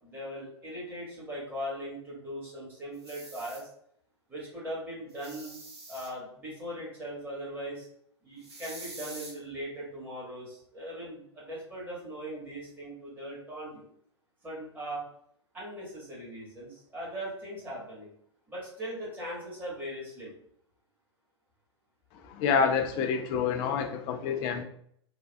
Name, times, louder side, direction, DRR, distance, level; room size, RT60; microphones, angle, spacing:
voice 1, 0.0-3.7 4.3-5.5 5.9-7.9 8.2-13.8 14.4-15.0 15.5-18.1 18.5-20.3, equal, 10° right, -6 dB, 1.4 m, -39 dB
sound 1, 2.9-3.6 5.1-6.1 8.4-9.3, right 2 dB, 65° right, 1.3 m, -45 dB
voice 2, 22.4-24.6, left 6 dB, 30° left, 6 dB, 0.3 m, -27 dB
3.4 x 2.3 x 2.2 m, 0.66 s
figure-of-eight pair, 100°, 15 cm